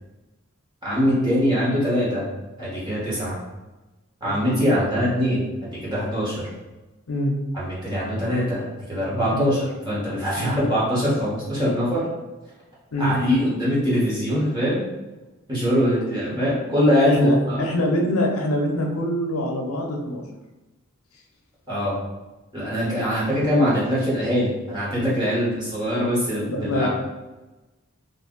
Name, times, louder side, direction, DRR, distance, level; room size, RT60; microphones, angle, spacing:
voice 1, 0.8-2.3 2.6-3.4 4.2-6.5 7.5-12.0 13.0-14.8 15.5-17.6 21.7-22.0 22.5-26.9, equal, 20° right, -8 dB, 1.2 m, -23 dB
voice 2, 4.2-4.8 7.1-7.4 9.3-9.5 10.4-10.6 12.9-13.2 17.0-20.2 26.5-26.9, left 1 dB, 80° left, 1 dB, 0.6 m, -24 dB
2.6 x 2.6 x 3.7 m, 1.1 s
head